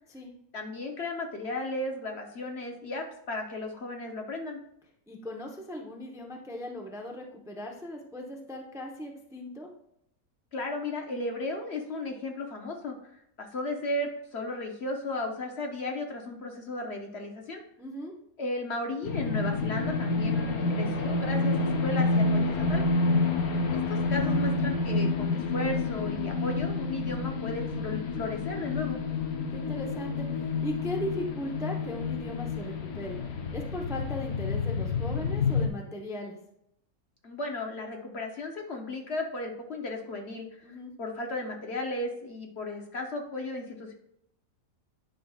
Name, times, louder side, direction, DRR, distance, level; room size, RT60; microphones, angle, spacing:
voice 1, 0.5-4.6 10.5-17.6 18.4-22.8 23.7-29.0 37.2-43.9, left 2 dB, 50° left, 2 dB, 1.1 m, -35 dB
voice 2, 5.1-9.7 17.8-18.1 23.1-23.8 29.1-33.2 33.5-36.4 40.6-40.9, equal, 5° right, 1 dB, 0.7 m, -38 dB
sound 1, 19.0-35.7, left 3 dB, 85° left, 1.4 m, -29 dB
9.4 x 5.8 x 2.4 m, 0.74 s
omnidirectional pair, 1.5 m